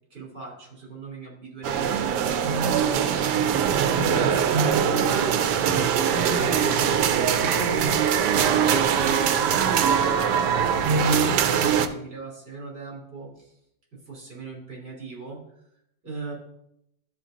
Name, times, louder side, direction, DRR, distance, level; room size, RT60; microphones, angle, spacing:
voice 1, 0.1-7.9 8.3-13.5 14.1-15.4 16.0-16.3, right 2 dB, 40° right, -4 dB, 3.1 m, -38 dB
sound 1, 1.6-11.9, right 7 dB, 75° right, 1.2 m, -22 dB
12.0 x 4.3 x 3.8 m, 0.79 s
omnidirectional pair, 1.9 m